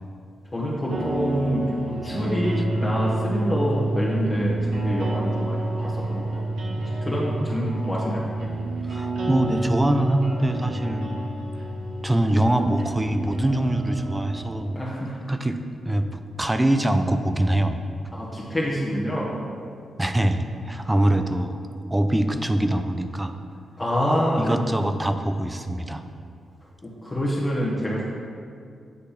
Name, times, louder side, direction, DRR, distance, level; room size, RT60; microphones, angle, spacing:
voice 1, 0.5-6.4 6.8-8.3 14.7-15.3 18.1-19.3 23.8-24.5 26.8-28.1, equal, 20° left, -7 dB, 1.3 m, -27 dB
sound 1, 0.9-14.6, right 2 dB, 85° right, 1.1 m, -33 dB
Electric guitar / Strum, 2.1-11.8, right 2 dB, 45° right, 1.6 m, -29 dB
voice 2, 8.9-11.1 12.0-14.8 15.3-15.6 15.9-17.8 20.0-21.6 21.9-23.3 24.4-26.0, right 1 dB, 15° right, 8 dB, 0.5 m, -23 dB
8.5 x 3.2 x 5.8 m, 2.3 s
cardioid pair, 75°, 0 cm